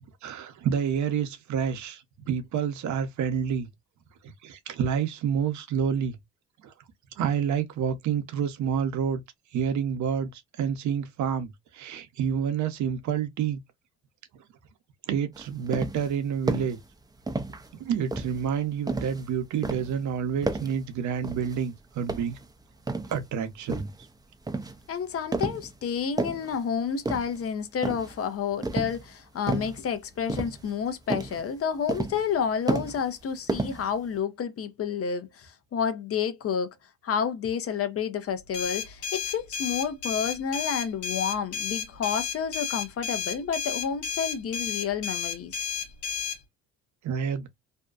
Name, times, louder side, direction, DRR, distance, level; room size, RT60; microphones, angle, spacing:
voice 1, 0.2-3.7 4.4-6.2 6.6-6.7 7.2-9.2 9.5-13.6 15.1-16.8 17.8-22.4 23.1-23.9 47.0-47.5, right 7 dB, 60° right, 0.8 m, -28 dB
sound 1, 15.3-16.1 16.5-16.8 17.3-17.7 18.1-19.3 19.6-20.0 20.4-20.8 21.2-21.6 22.0-23.2 23.7-24.0 24.5-24.8 25.3-25.7 26.0-26.6 27.0-27.5 27.8-28.2 28.6-29.1 29.5-29.8 30.3-30.8 31.1-31.4 31.9-32.4 32.7-33.2 33.5-34.1, right 3 dB, 10° right, 0.5 m, -31 dB
voice 2, 24.9-36.7 37.0-45.6, left 7 dB, 45° left, 0.7 m, -30 dB
sound 2, 38.5-46.4, left 7 dB, 70° left, 1.0 m, -32 dB
2.7 x 2.2 x 2.3 m
supercardioid pair, 65°, 32 cm